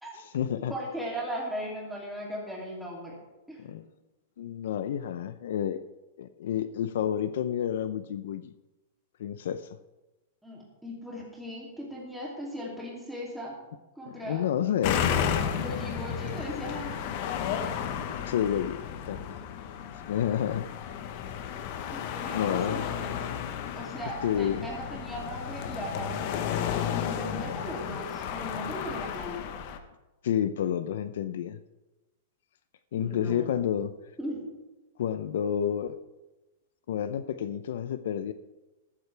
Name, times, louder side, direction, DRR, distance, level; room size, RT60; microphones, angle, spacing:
voice 1, 0.1-0.7 3.6-3.9 4.4-5.8 6.2-8.5 9.2-9.7 14.1-15.1 18.2-19.4 20.1-20.7 22.3-22.9 24.2-24.7 30.2-31.6 32.9-33.9 35.0-36.0 36.9-38.3, left 9 dB, 65° left, 13 dB, 0.6 m, -30 dB
voice 2, 0.7-3.2 3.5-3.6 10.4-13.5 13.9-14.4 15.5-17.1 21.9-23.2 23.7-29.4 33.0-33.6 34.2-34.4, equal, ahead, -4 dB, 2.7 m, -38 dB
sound 1, 14.8-29.8, left 8 dB, 40° left, 1.0 m, -33 dB
13.5 x 13.5 x 3.4 m, 1.1 s
supercardioid pair, 170°, 0 cm